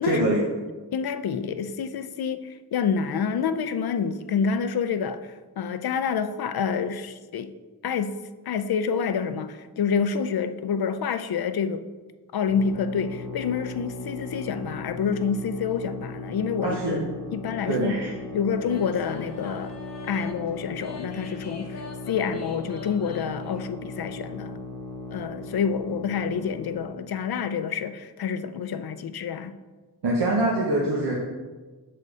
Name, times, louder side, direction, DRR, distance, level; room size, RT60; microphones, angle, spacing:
voice 1, 0.0-0.4 16.6-17.0 17.7-18.1 30.0-31.2, right 2 dB, 75° right, 1.0 m, -24 dB
voice 2, 0.9-7.5 7.8-8.1 8.5-11.8 12.3-17.0 17.3-18.0 18.3-19.7 20.1-24.5 25.1-29.6, left 6 dB, 60° left, 0.5 m, -28 dB
sound 1, 12.5-27.0, left 2 dB, 5° right, 1.3 m, -38 dB
sound 2, 18.6-23.6, left 3 dB, 35° left, 1.1 m, -44 dB
6.6 x 4.2 x 4.8 m
cardioid pair, 55°, 42 cm